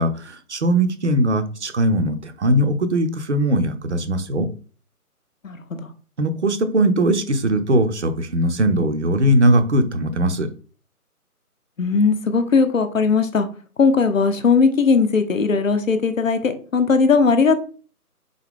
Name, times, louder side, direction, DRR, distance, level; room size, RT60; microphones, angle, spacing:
voice 1, 0.0-4.5 6.2-10.5, right 1 dB, 50° right, 9 dB, 0.6 m, -20 dB
voice 2, 5.4-5.9 11.8-13.5 13.8-17.6, left 4 dB, 55° left, 9 dB, 0.7 m, -18 dB
3.9 x 3.8 x 3.5 m, 0.41 s
figure-of-eight pair, 155°, 46 cm